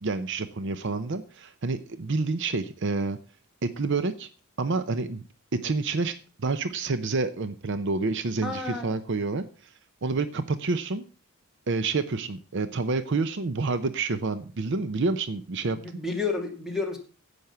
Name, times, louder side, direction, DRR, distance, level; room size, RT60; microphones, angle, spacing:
voice 1, 0.0-3.2 3.6-4.3 4.6-5.2 5.5-9.4 10.0-11.0 11.7-16.0, right 3 dB, 55° right, 12 dB, 0.7 m, -28 dB
voice 2, 8.4-9.0 15.7-17.0, left 4 dB, ahead, 2 dB, 2.4 m, -31 dB
10.5 x 8.1 x 5.6 m, 0.36 s
head